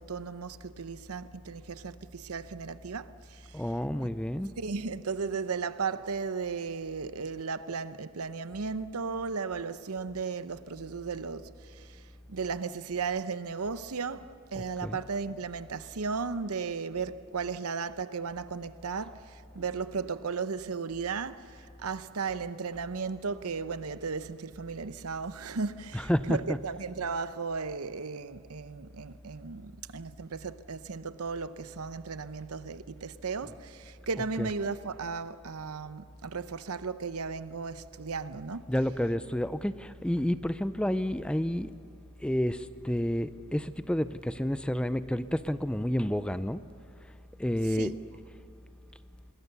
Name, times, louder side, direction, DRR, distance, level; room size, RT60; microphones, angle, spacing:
voice 1, 0.0-3.6 4.6-12.0 12.3-38.6 47.7-48.0, right 5 dB, 85° right, 0.8 m, -35 dB
voice 2, 3.5-4.5 14.5-15.0 25.9-26.6 33.4-33.5 34.1-34.5 38.7-41.7 42.2-46.7 47.4-48.0, equal, 5° left, 0.4 m, -30 dB
27.0 x 20.5 x 6.8 m
head